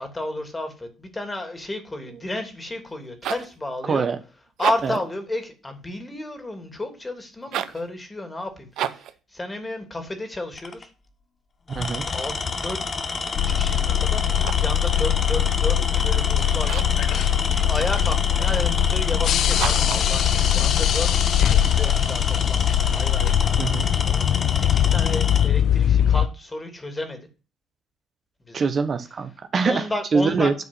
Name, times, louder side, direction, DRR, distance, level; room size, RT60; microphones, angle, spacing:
voice 1, 0.0-4.1 4.6-10.9 12.1-12.8 13.2-27.3 28.4-28.7 29.6-30.5, left 2 dB, 20° left, 6 dB, 2.9 m, -32 dB
sound 1, 2.9-3.6 4.5-5.1 7.4-7.9 8.7-9.2 14.2-14.8 16.6-17.1 19.5-20.1, right 11 dB, 75° right, 0.7 m, -30 dB
Tools, 10.5-10.8 11.7-25.5, left 4 dB, 40° left, 1.2 m, -29 dB
voice 2, 11.7-12.0 23.6-23.8 28.5-29.8 30.1-30.5, right 5 dB, 45° right, 9 dB, 1.1 m, -23 dB
sound 2, 13.3-26.3, left 11 dB, 70° left, 0.4 m, -21 dB
9.3 x 4.8 x 7.7 m, 0.35 s
supercardioid pair, 70°, 0 cm